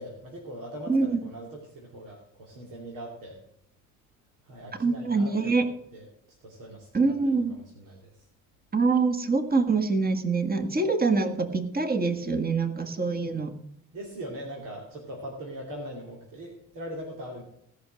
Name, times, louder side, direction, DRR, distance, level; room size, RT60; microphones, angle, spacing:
voice 1, 0.0-3.4 4.4-5.7 5.9-6.1 6.4-8.2 13.9-17.4, equal, 85° right, -2 dB, 2.7 m, -41 dB
voice 2, 0.9-1.2 4.8-5.7 6.9-7.6 8.7-13.6, right 4 dB, 30° right, 7 dB, 1.7 m, -25 dB
17.5 x 5.8 x 6.2 m, 0.73 s
cardioid pair, 70°, 32 cm